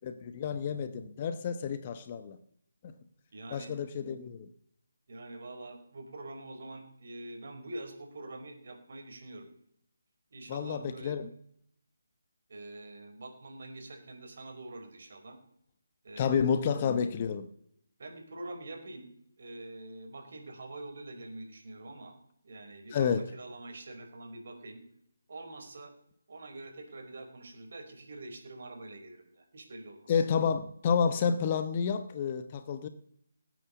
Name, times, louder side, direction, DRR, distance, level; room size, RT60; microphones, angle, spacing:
voice 1, 0.0-2.4 2.8-3.0 3.5-4.5 10.5-11.3 16.2-17.5 22.9-23.2 30.1-32.9, left 6 dB, 30° left, 1.0 m, -30 dB
voice 2, 3.3-3.7 5.1-9.5 10.3-11.2 12.5-15.4 16.0-16.5 18.0-19.1 19.4-22.1 22.4-24.8 25.3-25.9 26.3-30.2, right 2 dB, 55° right, 4.8 m, -45 dB
18.0 x 9.4 x 7.0 m
figure-of-eight pair, 155°, 0 cm